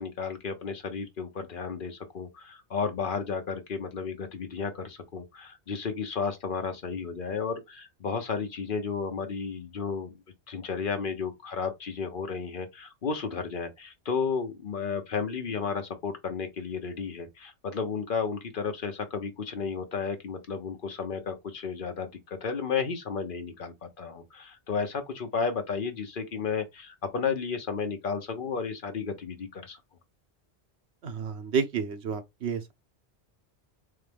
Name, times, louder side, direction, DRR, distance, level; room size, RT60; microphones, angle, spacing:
voice 1, 0.0-10.2 10.5-29.8, left 5 dB, 50° left, 1.0 m, -33 dB
voice 2, 31.0-32.7, right 6 dB, 70° right, 1.1 m, -30 dB
3.8 x 3.2 x 3.4 m
omnidirectional pair, 1.1 m